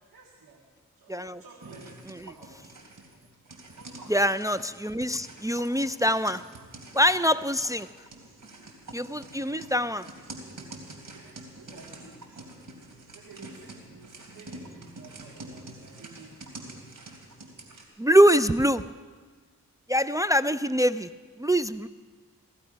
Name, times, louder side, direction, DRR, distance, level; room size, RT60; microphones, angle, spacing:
voice 1, 0.1-0.6 1.0-2.6 3.7-4.1 5.2-5.3 9.7-10.0 11.1-12.5 12.8-16.5, right 4 dB, 85° right, -1 dB, 1.9 m, -52 dB
voice 2, 1.1-1.4 4.1-6.4 6.9-7.9 8.9-10.1 18.0-18.9 19.9-21.1 21.4-21.9, equal, 10° right, 11 dB, 0.4 m, -23 dB
sound 1, 1.6-17.9, right 2 dB, 65° right, 3.3 m, -46 dB
17.0 x 16.0 x 5.3 m, 1.5 s
cardioid pair, 60°, 34 cm